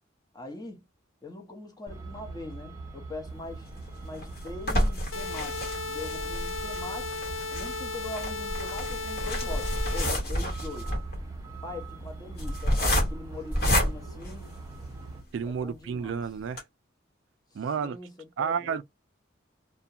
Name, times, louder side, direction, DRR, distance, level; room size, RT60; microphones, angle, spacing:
voice 1, 0.3-0.8 1.2-3.7 4.0-7.1 7.5-10.9 11.6-14.4 15.4-16.2 17.5-18.8, left 3 dB, 20° left, 0.7 m, -42 dB
Truck, 1.9-15.2, right 2 dB, 20° right, 0.7 m, -41 dB
sound 1, 3.7-15.1 15.6-15.7 16.0-16.1 16.5-16.6, equal, 50° left, 1.0 m, -30 dB
sound 2, 5.1-10.1, left 3 dB, 90° left, 0.5 m, -35 dB
voice 2, 15.3-16.6 17.5-18.0 18.4-18.8, right 6 dB, 70° right, 0.3 m, -31 dB
2.4 x 2.1 x 2.7 m
head